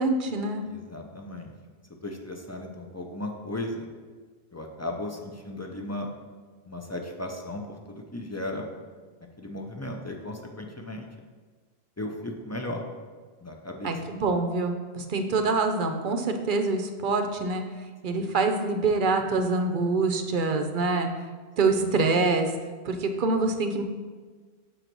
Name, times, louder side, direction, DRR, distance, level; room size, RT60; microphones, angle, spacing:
voice 1, 0.0-0.6 13.8-17.6 18.0-21.1 21.6-22.5 22.8-23.8, right 3 dB, 55° right, 6 dB, 0.7 m, -25 dB
voice 2, 0.7-1.5 2.0-3.9 4.5-6.1 6.7-8.7 9.4-11.1 12.0-12.9 13.4-14.1 18.1-18.2 21.7-22.0, left 1 dB, 20° left, 2 dB, 0.5 m, -36 dB
6.3 x 4.0 x 6.0 m, 1.5 s
omnidirectional pair, 1.1 m